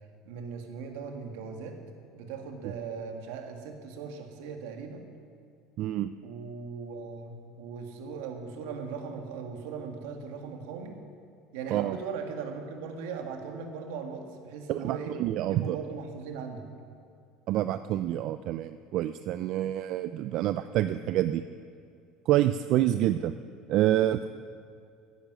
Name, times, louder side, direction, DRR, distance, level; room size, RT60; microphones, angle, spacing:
voice 1, 0.3-1.8 2.1-5.0 6.2-11.0 11.5-15.1 15.5-16.7, right 5 dB, 85° right, 4 dB, 1.9 m, -39 dB
voice 2, 5.8-6.1 11.7-12.0 14.7-15.8 17.5-21.4 22.3-23.3 23.7-24.3, right 13 dB, 45° right, 12 dB, 0.3 m, -27 dB
16.0 x 10.0 x 6.3 m, 2.4 s
cardioid pair, 170°, 0 cm